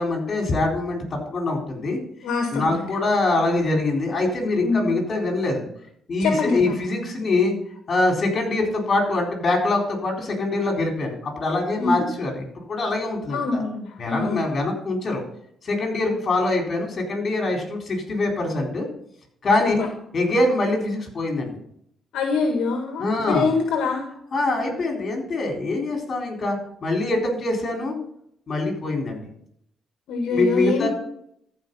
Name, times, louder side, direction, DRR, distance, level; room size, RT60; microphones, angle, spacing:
voice 1, 0.0-2.0 2.5-5.7 6.1-7.5 7.9-13.6 14.0-15.2 15.6-18.9 19.4-19.8 20.1-21.5 23.0-23.5 24.3-28.0 28.5-29.2 30.3-30.9, left 2 dB, 45° left, 2 dB, 4.1 m, -24 dB
voice 2, 2.2-2.9 4.6-4.9 6.2-6.8 11.8-12.0 13.3-14.4 19.6-19.7 22.1-24.0 30.1-30.9, left 4 dB, 80° left, 3 dB, 1.6 m, -24 dB
14.0 x 5.3 x 5.4 m, 0.68 s
cardioid pair, 90°, 0 cm